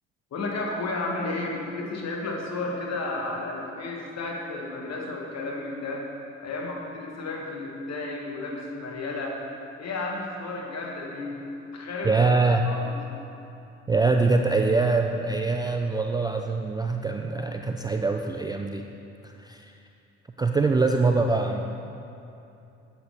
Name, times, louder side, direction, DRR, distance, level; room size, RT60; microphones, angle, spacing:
voice 1, 0.3-6.1 6.4-9.4 9.8-11.4 11.7-12.2 12.6-12.9, left 2 dB, 50° left, -1 dB, 1.6 m, -32 dB
voice 2, 12.0-12.7 13.9-18.9 19.2-19.7 20.4-21.7, right 3 dB, 10° right, 3 dB, 0.3 m, -24 dB
9.6 x 7.3 x 3.4 m, 2.8 s
figure-of-eight pair, 50°, 35 cm